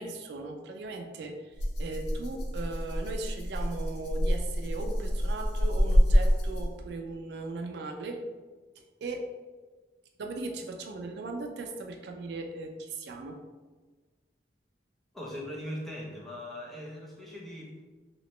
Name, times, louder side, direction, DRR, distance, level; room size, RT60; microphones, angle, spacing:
voice 1, 0.0-8.2 9.0-9.3 10.2-13.4, right 3 dB, 70° right, 3 dB, 0.4 m, -38 dB
Rattle (instrument), 1.6-6.9, equal, 70° left, 0.6 m, -27 dB
voice 2, 15.1-17.8, equal, ahead, -4 dB, 0.6 m, -40 dB
3.1 x 2.8 x 3.1 m, 1.4 s
head